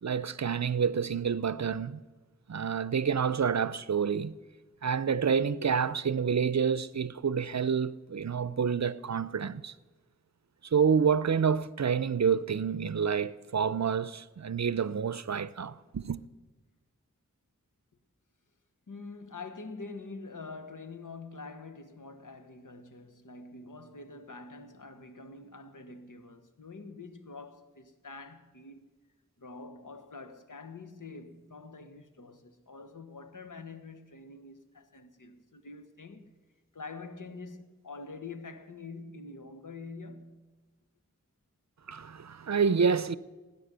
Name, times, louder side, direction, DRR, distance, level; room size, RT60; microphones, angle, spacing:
voice 1, 0.0-2.0 2.5-4.3 4.8-9.7 10.7-16.2 41.9-43.1, right 6 dB, 60° right, 0.6 m, -28 dB
voice 2, 18.9-28.9 29.4-36.4 36.7-40.5, left 3 dB, 80° left, 1.2 m, -46 dB
18.0 x 9.5 x 6.8 m
wide cardioid pair, 50°, 31 cm